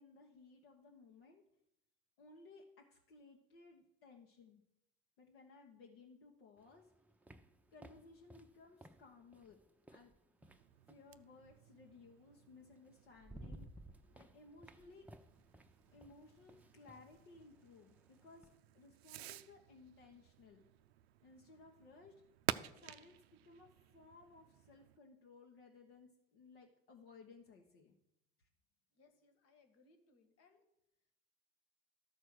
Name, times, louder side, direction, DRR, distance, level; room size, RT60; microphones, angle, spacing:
voice 1, 0.0-1.4 2.2-2.6 2.9-4.6 5.2-6.9 7.7-9.6 9.9-10.1 10.9-13.7 14.1-15.1 15.9-18.5 18.7-20.6 21.2-22.2 22.8-27.9 28.4-28.5, left 3 dB, 70° left, 0 dB, 1.2 m, -60 dB
sound 1, 6.6-11.1 12.4-12.5 12.9-18.6, right 1 dB, 5° right, 0.7 m, -58 dB
Fireworks, 10.4-25.0, right 14 dB, 80° right, 0.5 m, -50 dB
voice 2, 28.9-30.6, left 3 dB, 55° left, 6 dB, 1.8 m, -69 dB
13.0 x 4.6 x 6.3 m, 0.84 s
hypercardioid pair, 70°, 31 cm